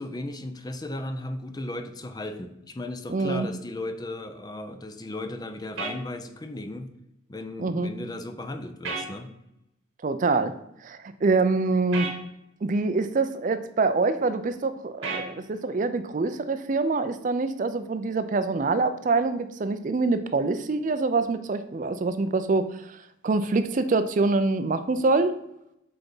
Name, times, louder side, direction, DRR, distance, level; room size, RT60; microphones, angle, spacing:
voice 1, 0.0-6.9 7.3-9.3, left 1 dB, 20° left, 7 dB, 0.5 m, -36 dB
voice 2, 3.1-3.5 7.6-7.9 10.0-10.5 10.8-12.1 12.6-25.4, right 3 dB, 40° right, 11 dB, 0.4 m, -25 dB
sound 1, 5.8-6.0 8.8-9.1 11.9-12.2 15.0-15.3, right 4 dB, 90° right, 1.4 m, -31 dB
7.7 x 3.5 x 5.4 m, 0.84 s
head